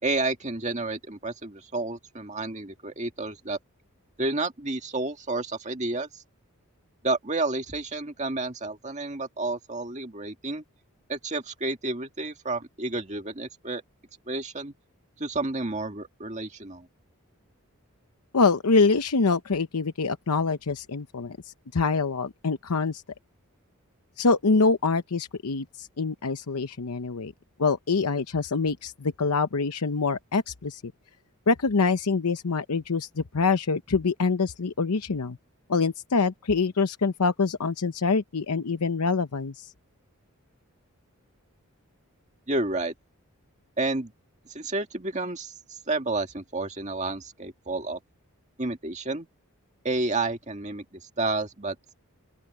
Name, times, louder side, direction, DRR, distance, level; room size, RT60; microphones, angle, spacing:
voice 1, 0.0-3.6 4.2-6.2 7.0-10.6 11.1-13.8 14.3-14.7 15.2-16.9 42.5-42.9 43.8-44.1 44.5-48.0 48.6-49.3 49.8-51.8, right 2 dB, 30° right, 2.0 m, -30 dB
voice 2, 18.3-23.0 24.2-27.3 27.6-30.9 31.5-35.4 35.7-39.7, left 4 dB, 90° left, 0.8 m, -25 dB
open air
head